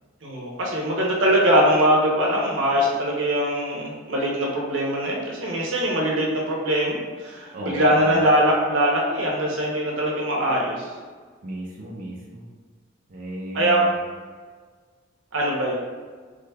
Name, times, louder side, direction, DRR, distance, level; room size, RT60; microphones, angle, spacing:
voice 1, 0.2-10.9 13.5-13.8 15.3-15.8, equal, 80° right, -2 dB, 0.7 m, -22 dB
voice 2, 7.5-8.2 11.4-12.5 13.1-13.9, right 1 dB, 45° right, -4 dB, 0.5 m, -34 dB
3.2 x 2.2 x 3.3 m, 1.5 s
head